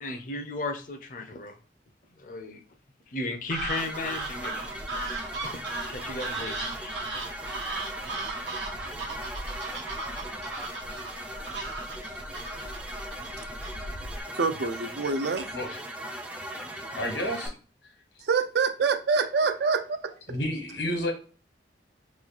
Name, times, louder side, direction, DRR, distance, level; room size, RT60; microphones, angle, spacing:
voice 1, 0.0-1.5 2.2-2.6 3.1-4.8 5.4-7.1, left 2 dB, 45° left, 6 dB, 0.5 m, -35 dB
sound 1, 3.5-14.2, right 3 dB, 85° right, 1.0 m, -36 dB
sound 2, 3.8-17.5, equal, 5° right, 0.3 m, -39 dB
voice 2, 14.3-15.5 18.2-20.1, right 5 dB, 70° right, 8 dB, 0.5 m, -26 dB
voice 3, 16.9-17.6 20.3-21.1, equal, 80° left, 2 dB, 1.2 m, -30 dB
3.0 x 2.3 x 3.9 m, 0.38 s
head